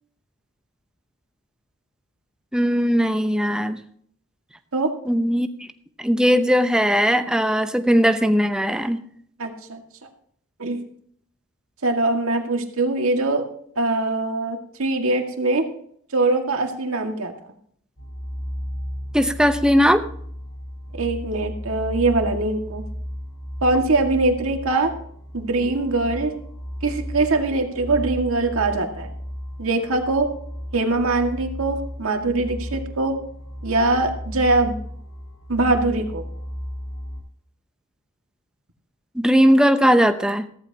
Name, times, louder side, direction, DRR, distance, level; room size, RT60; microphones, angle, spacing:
voice 1, 2.5-3.8 5.1-5.5 6.0-9.0 19.1-20.0 39.1-40.5, equal, 5° right, 8 dB, 0.8 m, -18 dB
voice 2, 9.4-9.8 10.6-10.8 11.8-13.4 13.8-15.7 16.1-17.3 20.9-22.8 23.6-24.9 25.3-26.3 26.8-29.1 29.6-30.3 30.7-33.2 33.6-34.7 35.5-36.2, right 2 dB, 70° right, 4 dB, 2.0 m, -22 dB
sound 1, 18.0-37.2, equal, 80° left, 5.7 m, -34 dB
15.0 x 14.0 x 2.9 m, 0.63 s
head